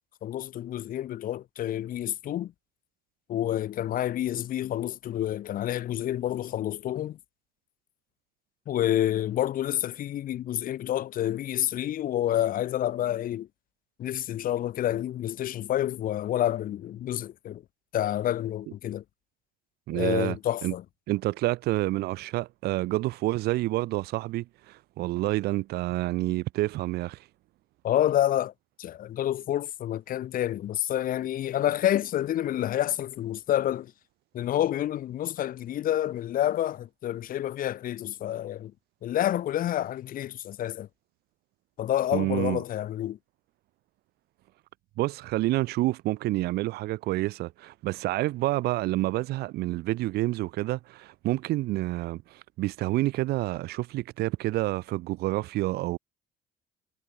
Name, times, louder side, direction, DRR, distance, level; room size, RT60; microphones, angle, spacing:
voice 1, 0.2-2.5 3.3-7.2 8.7-13.5 14.0-17.6 17.9-19.0 19.9-20.8 27.8-28.5 28.8-33.9 34.3-38.7 39.0-40.9 41.8-43.2, left 12 dB, 60° left, 1.5 m, -28 dB
voice 2, 19.9-20.7 21.1-27.2 42.1-42.6 45.0-56.0, right 18 dB, 75° right, 1.6 m, -28 dB
cardioid pair, 100°, 17 cm